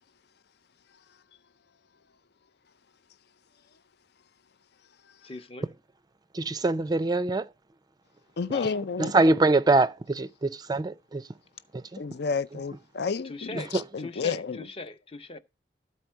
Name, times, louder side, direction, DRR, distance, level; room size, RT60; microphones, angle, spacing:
voice 1, 5.2-5.7 8.5-8.8 13.2-13.7 14.0-15.4, left 3 dB, 30° left, 0.8 m, -39 dB
voice 2, 6.3-7.4 9.0-11.2 13.7-13.8, right 2 dB, 25° right, 0.4 m, -23 dB
voice 3, 8.4-9.1 12.0-14.7, left 5 dB, 65° left, 0.5 m, -31 dB
13.5 x 4.4 x 4.5 m
head